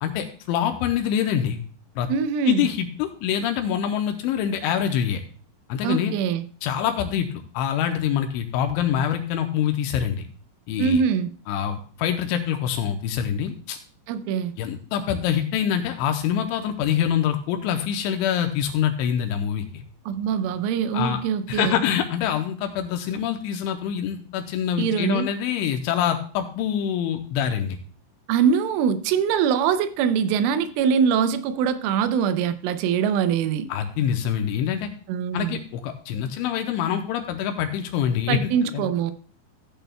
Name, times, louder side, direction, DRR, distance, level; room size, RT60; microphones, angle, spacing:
voice 1, 0.0-1.6 2.0-2.1 2.5-5.2 5.7-6.1 6.6-10.3 10.7-11.0 11.5-13.8 14.6-19.8 20.9-21.2 21.5-27.8 33.7-34.9 35.3-38.9, left 9 dB, 85° left, 2.9 m, -25 dB
voice 2, 2.1-2.7 5.8-6.4 10.8-11.3 14.1-14.5 20.1-21.8 24.8-25.3 28.3-33.7 35.1-35.6 38.3-39.1, right 7 dB, 85° right, 3.1 m, -23 dB
15.0 x 8.9 x 2.2 m
omnidirectional pair, 5.7 m